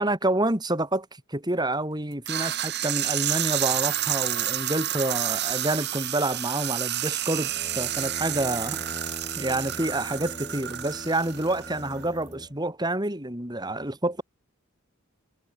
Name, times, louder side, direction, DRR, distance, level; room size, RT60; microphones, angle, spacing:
voice 1, 0.0-8.8 9.4-14.2, right 1 dB, 20° right, 4.4 m, -28 dB
sound 1, 2.3-12.0, right 12 dB, 55° right, 4.1 m, -30 dB
sound 2, 7.2-12.5, left 1 dB, 20° left, 5.8 m, -43 dB
head